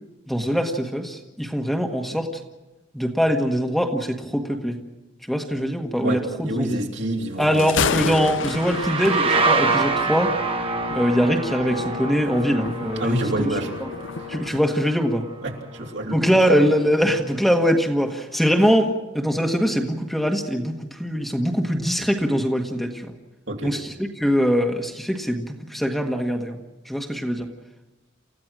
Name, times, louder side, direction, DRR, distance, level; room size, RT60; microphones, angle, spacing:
voice 1, 0.3-2.3 2.9-4.8 5.3-6.8 7.4-10.4 10.9-13.5 13.8-13.9 14.3-15.2 16.1-23.2 23.6-26.6 26.9-27.5, equal, ahead, 2 dB, 1.7 m, -22 dB
voice 2, 6.0-8.3 13.0-13.8 15.4-16.4 23.5-23.7, right 1 dB, 65° right, 1 dB, 3.4 m, -28 dB
Thunder, 7.4-14.6, left 6 dB, 65° left, 0.6 m, -32 dB
sound 1, 8.4-16.0, right 3 dB, 30° right, 1.6 m, -26 dB
29.0 x 15.0 x 6.3 m, 1.1 s
head